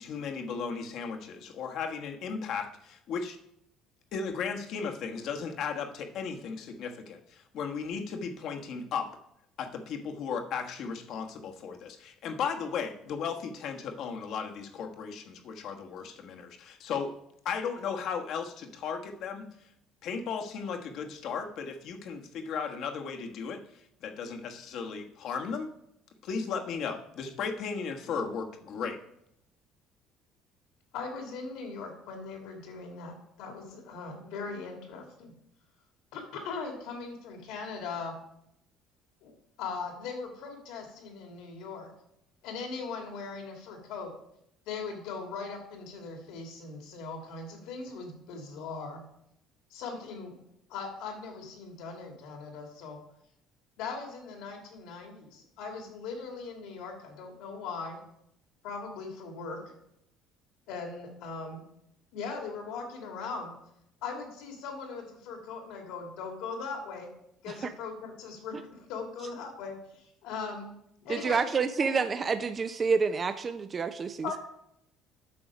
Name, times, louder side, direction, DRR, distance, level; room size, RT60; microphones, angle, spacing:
voice 1, 0.0-3.4 4.1-9.1 9.6-17.1 17.4-19.5 20.0-25.7 26.2-29.0, left 6 dB, 65° left, 4 dB, 1.3 m, -35 dB
voice 2, 30.9-35.3 36.1-38.2 39.2-39.3 39.6-41.9 42.4-44.1 44.7-49.0 49.7-50.4 50.7-53.0 53.8-58.0 58.6-59.7 60.7-61.6 62.1-63.6 64.0-67.1 67.4-70.7 71.0-71.9 74.2-74.4, left 4 dB, 80° left, 2 dB, 2.5 m, -39 dB
voice 3, 71.1-74.4, right 5 dB, 30° right, 9 dB, 0.5 m, -29 dB
8.5 x 6.3 x 5.1 m, 0.77 s
cardioid pair, 105°, 0 cm